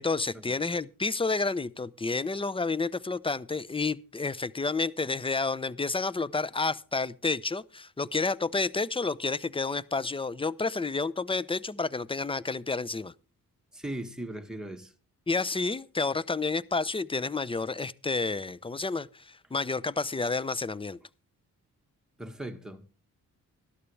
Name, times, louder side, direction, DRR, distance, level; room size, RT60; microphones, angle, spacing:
voice 1, 0.0-13.1 15.3-21.0, left 3 dB, 15° left, 0.6 m, -30 dB
voice 2, 13.7-14.9 22.2-22.9, right 1 dB, ahead, 1.9 m, -38 dB
13.0 x 12.0 x 3.4 m
cardioid pair, 60°, 34 cm